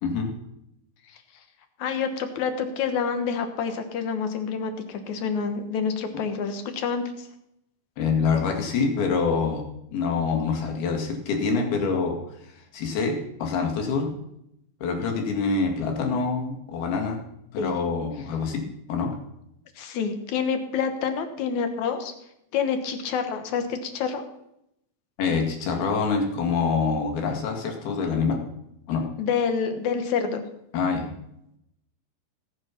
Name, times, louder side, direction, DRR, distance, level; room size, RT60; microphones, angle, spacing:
voice 1, 1.8-7.3 17.6-17.7 19.8-22.1 22.5-24.2 29.2-30.4, left 6 dB, 60° left, 7 dB, 2.3 m, -27 dB
voice 2, 8.0-9.6 9.9-12.2 12.7-14.1 14.8-17.2 17.5-18.6 18.9-19.1 25.2-28.4 28.9-29.0 30.7-31.1, left 5 dB, 85° left, 2 dB, 4.0 m, -25 dB
18.5 x 7.6 x 5.9 m, 0.80 s
omnidirectional pair, 4.3 m